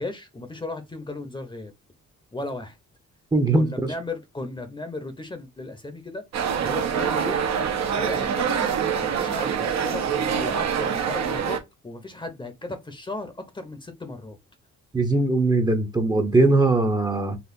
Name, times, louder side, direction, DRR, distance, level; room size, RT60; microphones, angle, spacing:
voice 1, 0.0-1.7 2.3-2.8 3.5-6.2 6.6-7.5 7.8-8.7 9.0-14.4, left 2 dB, 15° left, 0.8 m, -36 dB
voice 2, 3.3-3.7 14.9-17.4, right 2 dB, 15° right, 0.8 m, -20 dB
sound 1, 6.3-11.6, right 7 dB, 60° right, 0.8 m, -25 dB
4.1 x 2.4 x 2.6 m
cardioid pair, 90°, 30 cm